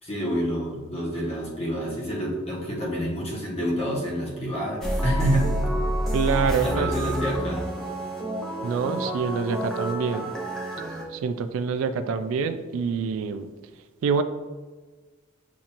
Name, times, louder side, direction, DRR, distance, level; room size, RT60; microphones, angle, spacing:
voice 1, 0.0-5.5 6.6-7.7, equal, 30° left, -4 dB, 1.0 m, -28 dB
sound 1, 4.8-11.0, right 1 dB, ahead, 0.6 m, -28 dB
voice 2, 6.1-6.9 8.6-10.3 11.1-13.5 14.0-14.2, right 5 dB, 75° right, 11 dB, 0.3 m, -26 dB
7.2 x 2.6 x 2.8 m, 1.4 s
head